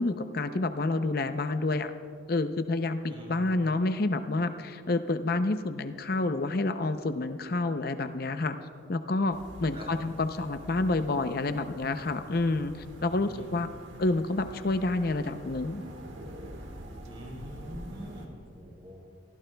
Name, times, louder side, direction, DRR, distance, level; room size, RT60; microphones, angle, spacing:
voice 1, 0.0-1.9 2.3-8.6 8.9-12.7 13.0-13.7 14.0-15.8, left 2 dB, 50° left, 9 dB, 0.6 m, -28 dB
sound 1, 9.3-18.3, right 1 dB, 70° right, 1.5 m, -46 dB
voice 2, 17.1-19.0, equal, 30° right, -2 dB, 3.8 m, -44 dB
28.5 x 15.5 x 2.3 m, 2.3 s
head